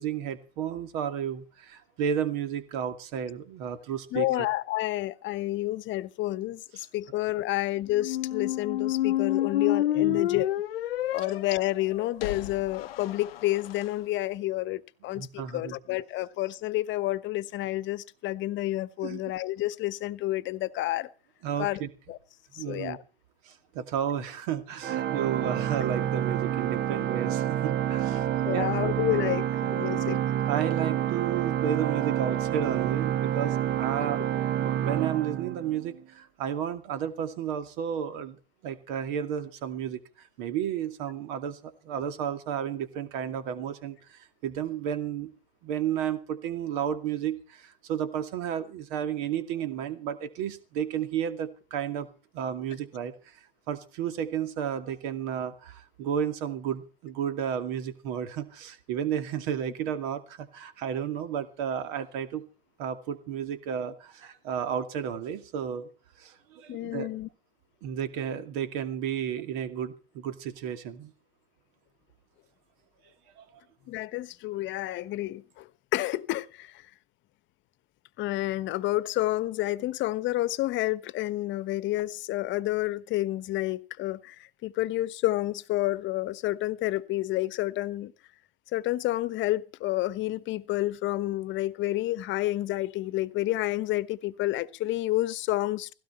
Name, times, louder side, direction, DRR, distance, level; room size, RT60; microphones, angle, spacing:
voice 1, 0.0-4.3 10.0-10.2 15.2-15.8 19.0-19.2 21.4-21.9 22.6-23.0 23.4-28.2 28.5-28.7 30.5-34.2 34.6-45.3 45.6-52.1 52.3-53.4 53.7-62.4 62.8-65.9 66.2-67.1 67.8-71.1 73.4-73.5, right 9 dB, 55° right, 2.4 m, -32 dB
voice 2, 4.1-10.5 11.1-21.1 21.6-21.8 22.1-22.2 22.5-23.0 28.4-30.2 34.0-34.1 66.7-67.3 73.9-76.9 78.2-88.1 88.7-95.9, left 16 dB, 40° left, 1.2 m, -29 dB
sound 1, 7.9-13.8, left 13 dB, 70° left, 0.8 m, -29 dB
Organ, 24.8-36.0, right 11 dB, 35° right, 1.0 m, -28 dB
17.0 x 17.0 x 4.4 m
figure-of-eight pair, 85°, 31 cm